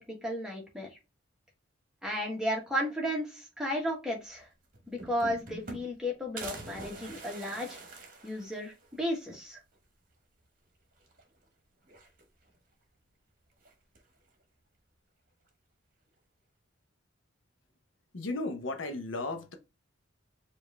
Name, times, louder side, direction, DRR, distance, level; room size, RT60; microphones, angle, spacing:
voice 1, 0.1-0.9 2.0-4.5 4.9-7.8 8.2-9.6, equal, 5° right, 1.3 m, -34 dB
sound 1, 4.4-4.5 4.7-6.0 6.4-9.0 9.4-9.5 9.7-9.8 11.0-11.5 11.8-12.6 13.6-14.2, right 2 dB, 45° right, 1.1 m, -45 dB
voice 2, 18.1-19.5, left 2 dB, 75° left, 0.8 m, -35 dB
4.8 x 2.6 x 3.2 m
head